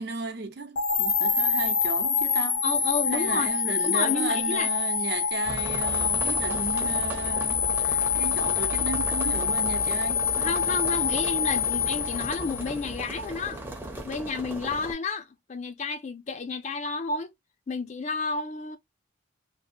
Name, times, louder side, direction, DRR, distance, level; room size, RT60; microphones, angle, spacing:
voice 1, 0.0-2.6 3.1-10.2, right 3 dB, 55° right, 0.6 m, -35 dB
sound 1, 0.8-12.9, left 6 dB, 75° left, 0.8 m, -26 dB
voice 2, 2.6-3.5 3.8-4.7 10.4-13.6 14.0-17.3 17.7-18.8, left 4 dB, 35° left, 0.4 m, -31 dB
sound 2, 5.5-14.9, right 1 dB, 10° right, 0.6 m, -36 dB
2.7 x 2.1 x 2.5 m
head